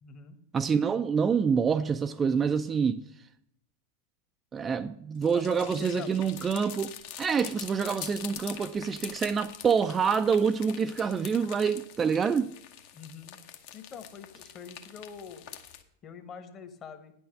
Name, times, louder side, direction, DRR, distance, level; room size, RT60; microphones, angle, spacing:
voice 1, 0.0-0.4 5.3-6.1 12.9-13.4 13.7-15.5 16.0-17.1, left 6 dB, 30° left, 1.2 m, -44 dB
voice 2, 0.5-3.0 4.5-6.9 7.2-12.5, right 6 dB, 20° right, 0.4 m, -26 dB
sound 1, 5.1-15.8, left 10 dB, 50° left, 0.9 m, -45 dB
10.0 x 6.2 x 6.5 m
figure-of-eight pair, 90°, 0 cm